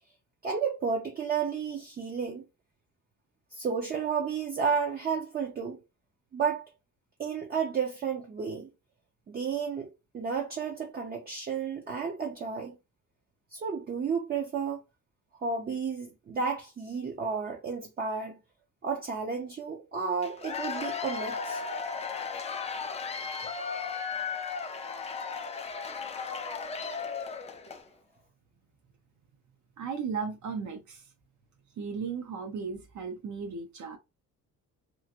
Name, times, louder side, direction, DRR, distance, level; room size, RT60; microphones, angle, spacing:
voice 1, 0.4-2.4 3.5-5.8 6.3-6.7 7.2-8.7 9.3-12.8 13.5-14.8 15.4-18.4 18.8-21.6, right 6 dB, 30° right, 0.5 m, -32 dB
Cheering / Applause / Crowd, 20.2-27.9, left 5 dB, 20° left, 0.4 m, -35 dB
voice 2, 29.8-31.0 31.8-34.0, right 5 dB, 60° right, 0.8 m, -35 dB
3.0 x 2.5 x 2.8 m
cardioid pair, 150°, 33 cm